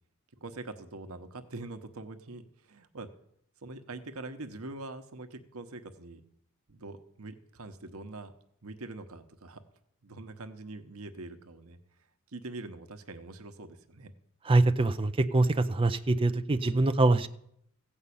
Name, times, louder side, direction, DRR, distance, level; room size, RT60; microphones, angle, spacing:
voice 1, 0.4-3.1 3.6-6.2 6.7-8.3 8.6-9.6 10.0-11.8 12.3-14.1, right 2 dB, 85° right, 8 dB, 1.0 m, -43 dB
voice 2, 14.5-17.3, right 2 dB, 25° right, 9 dB, 0.4 m, -24 dB
15.0 x 5.5 x 8.5 m, 0.73 s
head